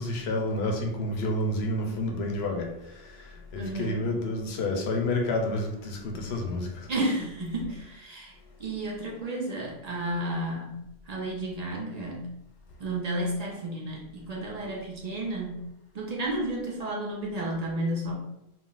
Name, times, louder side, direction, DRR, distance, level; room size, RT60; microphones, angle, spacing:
voice 1, 0.0-6.9, left 1 dB, 75° left, 2 dB, 0.8 m, -30 dB
voice 2, 3.5-4.0 6.9-8.3 8.6-10.7 11.1-12.3 12.8-15.6 15.9-18.1, right 1 dB, 50° right, -2 dB, 0.5 m, -32 dB
2.4 x 2.0 x 3.7 m, 0.87 s
omnidirectional pair, 1.1 m